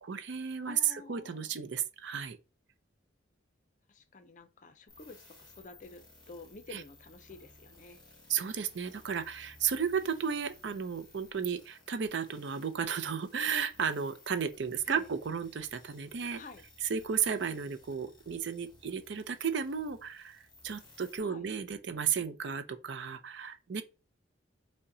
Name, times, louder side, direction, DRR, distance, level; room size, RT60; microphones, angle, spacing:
voice 1, 0.0-2.4 6.7-6.8 8.3-16.4 16.9-23.8, right 7 dB, 65° right, 0.5 m, -34 dB
voice 2, 0.6-1.6 3.9-8.0 14.8-15.1 16.4-16.6 21.2-21.5, left 3 dB, 40° left, 0.5 m, -50 dB
sound 1, 4.9-21.2, left 2 dB, 20° left, 1.2 m, -59 dB
5.4 x 2.1 x 3.8 m
head